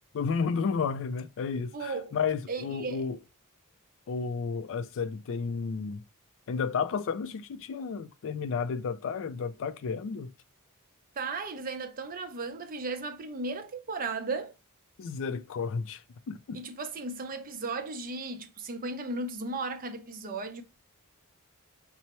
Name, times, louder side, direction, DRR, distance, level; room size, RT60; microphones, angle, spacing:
voice 1, 0.1-3.2 4.1-6.0 6.5-10.3 15.0-16.6, left 5 dB, 60° left, 0.4 m, -32 dB
voice 2, 1.7-2.1 2.5-3.1 11.2-14.6 16.5-20.6, right 3 dB, 40° right, 0.5 m, -35 dB
5.4 x 2.0 x 2.9 m
head